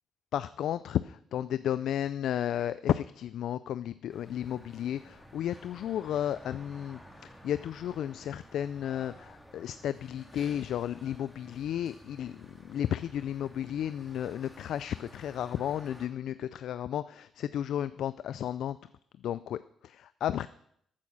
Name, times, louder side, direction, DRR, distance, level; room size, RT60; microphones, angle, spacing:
voice 1, 0.3-18.8 19.2-20.5, left 10 dB, 75° left, 15 dB, 0.4 m, -33 dB
sound 1, 4.1-16.1, equal, 5° left, 2.1 m, -53 dB
13.5 x 8.4 x 6.4 m, 0.70 s
cardioid pair, 90°, 0 cm